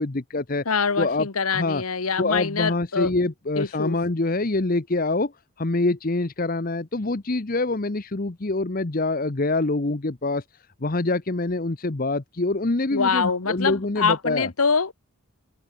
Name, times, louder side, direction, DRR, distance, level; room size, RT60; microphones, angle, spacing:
voice 1, 0.0-0.6 1.0-1.3 1.5-1.8 2.2-5.3 5.6-10.4 10.8-14.5, left 2 dB, 40° left, 0.9 m, -25 dB
voice 2, 0.6-3.1 3.6-4.0 12.9-14.9, left 5 dB, 85° left, 1.3 m, -24 dB
open air
head